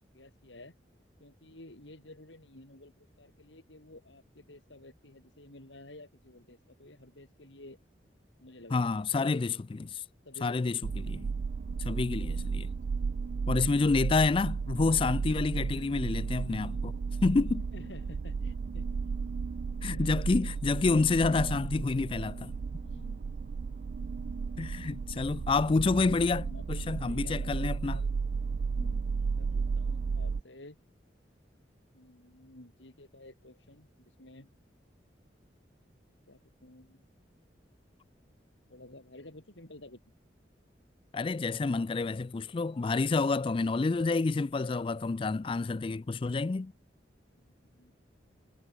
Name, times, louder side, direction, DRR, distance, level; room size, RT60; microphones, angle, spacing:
voice 1, 0.1-0.7 1.2-7.8 8.4-9.3 10.3-10.9 15.2-15.4 17.7-19.3 19.9-20.2 22.8-23.3 25.6-26.1 26.4-26.8 27.1-28.1 28.7-30.8 31.9-33.9 34.2-34.5 36.3-37.0 38.7-40.0 47.4-47.9, left 1 dB, 80° left, 3.9 m, -52 dB
voice 2, 8.7-10.0 10.4-11.3 11.8-12.8 13.5-16.9 17.2-17.7 19.8-22.5 24.6-28.0 41.1-46.7, left 3 dB, 30° left, 0.3 m, -28 dB
sound 1, 10.8-30.4, right 5 dB, 55° right, 0.3 m, -34 dB
head